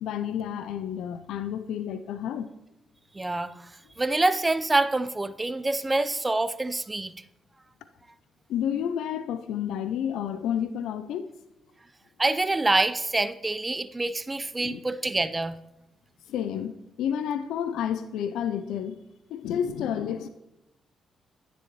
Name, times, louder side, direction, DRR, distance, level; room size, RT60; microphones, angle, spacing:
voice 1, 0.0-2.5 8.5-11.3 14.6-14.8 16.3-19.0 19.3-20.3, left 9 dB, 75° left, 0.4 m, -30 dB
voice 2, 3.1-3.7 4.0-7.1 12.2-15.6, right 2 dB, 25° right, 0.6 m, -26 dB
10.0 x 9.9 x 3.0 m
hypercardioid pair, 45°, 0 cm